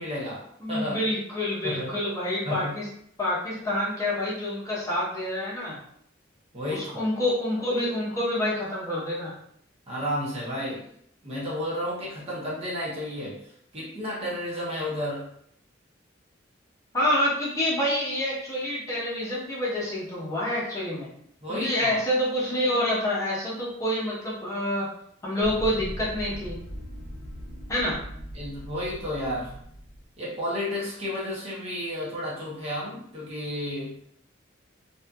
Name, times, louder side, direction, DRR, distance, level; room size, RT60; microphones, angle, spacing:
voice 1, 0.0-1.0 1.6-1.9 2.4-2.7 6.5-7.0 9.9-10.9 11.2-15.3 21.4-22.0 28.3-29.6 30.2-34.0, left 1 dB, 30° right, -6 dB, 0.7 m, -32 dB
voice 2, 0.6-2.9 3.2-5.8 6.7-9.3 16.9-21.1 21.5-24.9 25.2-26.6 27.7-28.0, left 1 dB, 15° left, -7 dB, 0.8 m, -27 dB
sound 1, 25.4-30.0, equal, 50° left, 0.7 m, -39 dB
2.6 x 2.4 x 2.3 m, 0.69 s
head